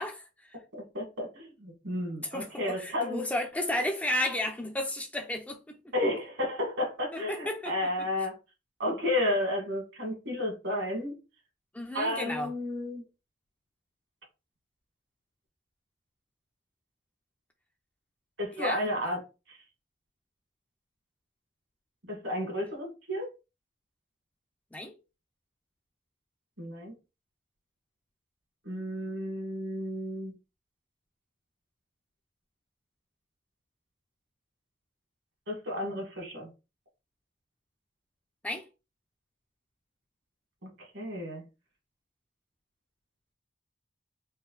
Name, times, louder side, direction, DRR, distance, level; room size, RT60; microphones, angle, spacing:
voice 1, 0.0-0.6 2.2-5.9 7.1-7.7 11.7-12.5 18.5-18.8 24.7-24.9 38.4-38.7, left 1 dB, 10° left, 0.4 m, -33 dB
voice 2, 0.7-3.2 5.9-8.3 8.8-11.1 11.9-13.0 18.4-19.2 19.5-19.6 22.1-23.3 26.6-26.9 28.7-30.3 35.5-36.5 40.6-40.7 40.9-41.4, left 1 dB, 65° right, 1.8 m, -32 dB
3.9 x 2.1 x 3.9 m
head